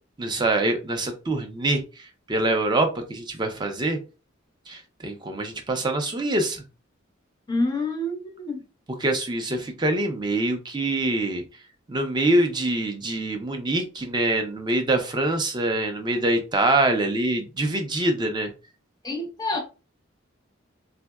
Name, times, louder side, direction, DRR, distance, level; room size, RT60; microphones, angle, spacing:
voice 1, 0.2-4.0 4.7-6.6 9.0-11.4 11.9-18.5, right 2 dB, 20° right, 0.5 m, -25 dB
voice 2, 7.5-8.6 19.0-19.6, left 2 dB, 20° left, 0.6 m, -27 dB
3.5 x 2.1 x 2.2 m
head